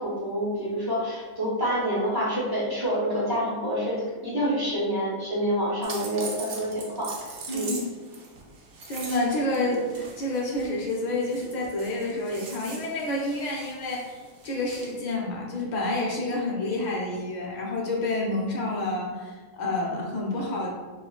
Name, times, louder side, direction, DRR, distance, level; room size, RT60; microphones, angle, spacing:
voice 1, 0.0-7.1 7.5-7.7 9.6-9.9, equal, 30° right, -8 dB, 0.4 m, -27 dB
sound 1, 5.8-15.0, right 4 dB, 85° right, 1.1 m, -42 dB
voice 2, 7.5-7.9 8.9-20.7, left 2 dB, 80° left, -3 dB, 0.4 m, -29 dB
4.7 x 2.1 x 2.3 m, 1.3 s
omnidirectional pair, 1.5 m